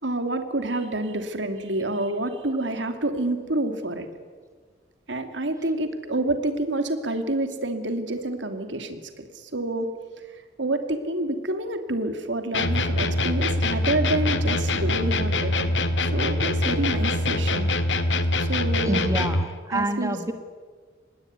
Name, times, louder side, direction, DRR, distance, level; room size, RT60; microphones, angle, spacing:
voice 1, 0.0-4.1 5.1-9.9 10.6-15.7 16.0-17.7 18.4-19.1 19.7-20.3, right 2 dB, 85° right, 7 dB, 2.8 m, -28 dB
sound 1, 12.5-19.5, left 2 dB, 85° left, 1.9 m, -24 dB
voice 2, 18.8-20.3, right 1 dB, 20° right, 8 dB, 1.6 m, -27 dB
26.0 x 20.5 x 9.6 m, 1.5 s
head